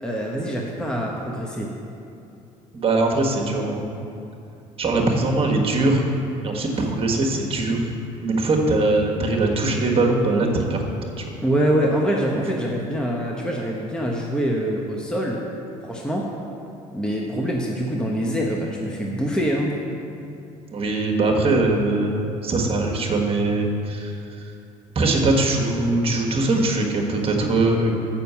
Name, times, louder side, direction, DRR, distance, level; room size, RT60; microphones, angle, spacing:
voice 1, 0.0-1.7 11.4-15.4 15.8-16.3 16.9-19.7, equal, 5° left, -2 dB, 0.9 m, -24 dB
voice 2, 2.7-3.8 4.8-6.0 6.4-7.8 8.2-10.8 11.2-11.3 20.7-24.1 24.9-27.9, right 2 dB, 40° right, 1 dB, 1.5 m, -21 dB
6.8 x 5.8 x 6.9 m, 2.7 s
supercardioid pair, 80°, 15 cm